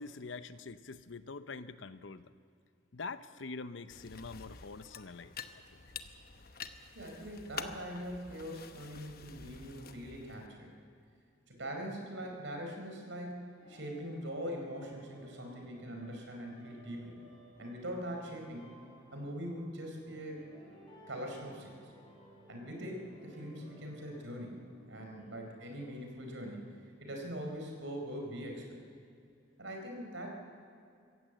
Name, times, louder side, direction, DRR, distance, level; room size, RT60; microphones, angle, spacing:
voice 1, 0.0-2.3 2.9-5.3 5.7-5.8, left 4 dB, 75° left, 12 dB, 0.8 m, -45 dB
sound 1, 3.9-10.5, left 6 dB, 50° left, 0.9 m, -48 dB
voice 2, 6.9-10.7 11.5-17.2 17.6-18.7 19.1-20.4 21.1-21.8 22.5-26.6 27.0-28.8 29.6-30.3, equal, 75° right, 2 dB, 4.4 m, -42 dB
sound 2, 13.6-25.9, equal, 25° left, 6.3 m, -57 dB
25.5 x 15.5 x 8.0 m, 2.4 s
head